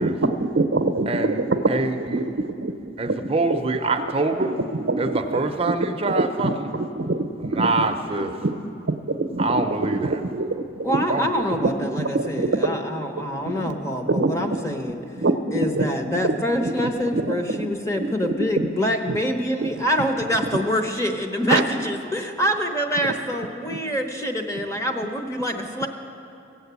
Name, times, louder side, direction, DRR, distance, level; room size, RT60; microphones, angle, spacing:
voice 1, 0.0-1.6 2.1-2.2 2.6-2.7 3.1-3.2 3.5-3.6 4.9-5.0 6.2-7.7 8.2-8.5 9.1-9.4 10.0-10.5 10.9-11.0 11.6-11.7 12.1-12.7 14.1-14.3 15.2-15.3 15.8-15.9 16.2-16.3 17.1-17.3 17.6-17.7 18.6-18.7 19.1-19.2 19.6-19.7 21.5-21.6, right 3 dB, 70° right, 9 dB, 0.7 m, -23 dB
voice 2, 1.1-2.3 3.0-4.6 5.0-6.7 7.4-8.3 9.4-10.2 11.1-11.3, right 3 dB, 30° right, 6 dB, 0.6 m, -25 dB
voice 3, 10.8-15.0 15.5-25.9, equal, 15° left, 4 dB, 0.9 m, -25 dB
16.0 x 8.1 x 8.2 m, 2.6 s
head